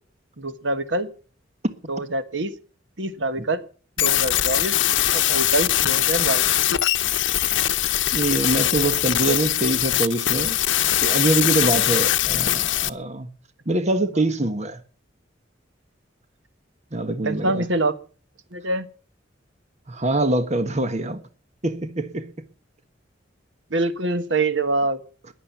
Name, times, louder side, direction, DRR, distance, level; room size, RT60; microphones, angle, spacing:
voice 1, 0.4-1.1 1.9-2.5 3.0-3.6 4.0-4.8 5.1-6.5 14.1-14.2 17.2-17.9 18.5-18.9 23.7-25.0, right 2 dB, 75° right, 1.4 m, -25 dB
sound 1, 4.0-12.9, left 13 dB, 80° left, 0.8 m, -21 dB
voice 2, 8.1-10.6 11.0-13.3 13.7-14.8 16.9-17.6 19.9-21.2 21.6-22.3, right 2 dB, 40° right, 1.3 m, -24 dB
15.0 x 11.0 x 7.1 m
head